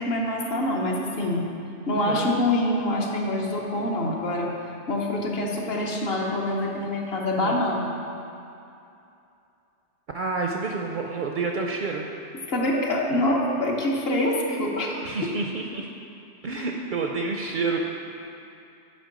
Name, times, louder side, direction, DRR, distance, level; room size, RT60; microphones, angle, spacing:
voice 1, 0.0-1.5 1.9-4.5 4.9-8.0 12.5-15.3, left 1 dB, 60° left, -1 dB, 1.0 m, -25 dB
voice 2, 10.1-12.1 15.0-15.9 16.4-17.8, right 4 dB, 60° right, 1 dB, 0.5 m, -29 dB
7.6 x 5.2 x 5.1 m, 2.7 s
omnidirectional pair, 1.2 m